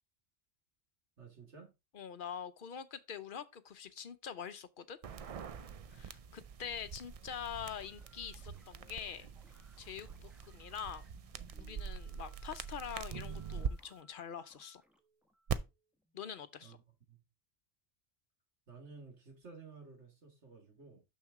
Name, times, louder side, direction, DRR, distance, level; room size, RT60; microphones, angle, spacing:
voice 1, 1.2-1.7 16.6-16.8 17.1-17.2 18.7-21.0, right 4 dB, 80° right, 2.2 m, -54 dB
voice 2, 1.9-5.0 5.9-9.3 9.8-11.1 11.6-14.8 16.1-16.8, left 7 dB, 55° left, 0.8 m, -45 dB
sound 1, 5.0-13.7 15.5-15.6, right 7 dB, 60° right, 0.3 m, -43 dB
sound 2, 7.6-16.5, equal, ahead, 0.8 m, -68 dB
6.5 x 6.1 x 3.6 m
omnidirectional pair, 1.2 m